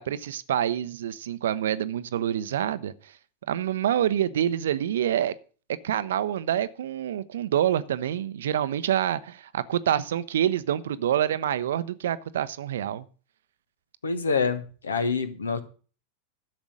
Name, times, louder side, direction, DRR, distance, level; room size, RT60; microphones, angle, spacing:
voice 1, 0.0-2.9 3.5-5.3 5.8-13.0, right 10 dB, 60° right, 0.7 m, -27 dB
voice 2, 14.0-15.6, left 5 dB, 70° left, 1.3 m, -26 dB
12.0 x 7.1 x 6.4 m
figure-of-eight pair, 90°, 0 cm